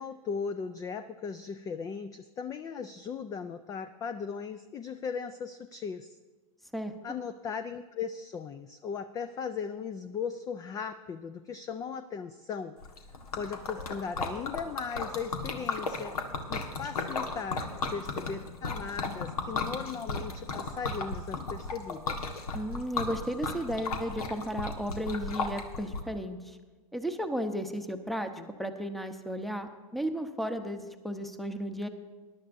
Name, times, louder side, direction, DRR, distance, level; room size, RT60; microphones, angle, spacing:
voice 1, 0.0-6.2 7.0-12.8 13.3-16.2 16.5-22.2 28.4-28.5, left 6 dB, 20° left, 11 dB, 0.4 m, -37 dB
Liquid, 12.8-26.0, left 3 dB, 80° left, 1.6 m, -35 dB
voice 2, 22.5-26.6 26.9-28.3 28.6-31.9, equal, ahead, 8 dB, 0.8 m, -34 dB
20.5 x 11.5 x 2.7 m, 1.3 s
hypercardioid pair, 115°, 19 cm